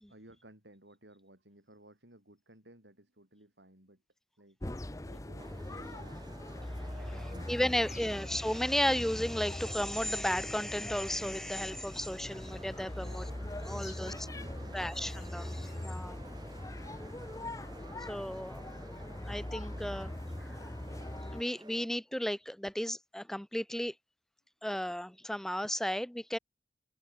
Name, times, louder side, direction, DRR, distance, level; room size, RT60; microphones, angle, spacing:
voice 1, 0.1-4.0 4.4-4.6 4.9-6.2 7.0-8.1 13.0-14.9, right 1 dB, 90° right, 7.4 m, -58 dB
sound 1, 4.6-21.4, left 1 dB, 20° left, 0.7 m, -41 dB
sound 2, 5.4-21.9, right 2 dB, 25° right, 1.8 m, -53 dB
voice 2, 6.7-7.1 7.5-13.2 13.7-14.1 14.7-16.2 18.0-18.7 19.3-20.1 20.4-20.5 21.3-23.9 24.6-26.4, equal, ahead, 0.3 m, -34 dB
head